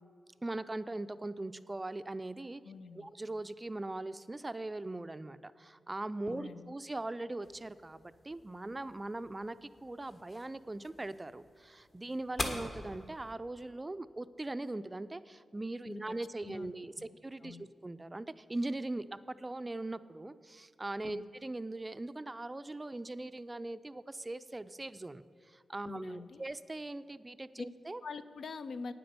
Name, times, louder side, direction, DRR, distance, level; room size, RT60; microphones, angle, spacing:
voice 1, 0.4-2.6 2.9-28.0, right 2 dB, 25° right, 14 dB, 0.4 m, -40 dB
voice 2, 2.6-3.1 6.3-6.8 15.8-16.2 16.4-16.7 17.4-17.7 21.0-21.3 25.8-26.4 27.6-27.7 28.0-28.9, left 4 dB, 70° left, 11 dB, 0.5 m, -44 dB
sound 1, 7.4-13.3, left 2 dB, 50° left, 1.5 m, -45 dB
9.3 x 7.8 x 6.8 m, 2.5 s
cardioid pair, 70°, 0 cm